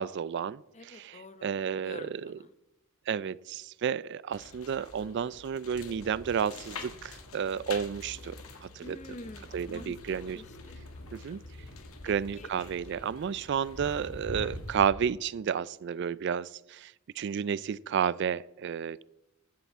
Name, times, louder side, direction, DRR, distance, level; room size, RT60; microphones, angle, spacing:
voice 1, 0.0-2.4 3.1-9.0 9.5-10.4 11.1-11.4 12.0-19.0, right 7 dB, 55° right, 20 dB, 0.3 m, -32 dB
voice 2, 0.7-1.5 1.8-2.5 8.8-11.4 11.8-12.5, left 2 dB, 35° left, 13 dB, 0.7 m, -48 dB
sound 1, 4.3-14.9, left 2 dB, 85° left, 1.8 m, -45 dB
15.5 x 11.5 x 3.6 m, 0.92 s
head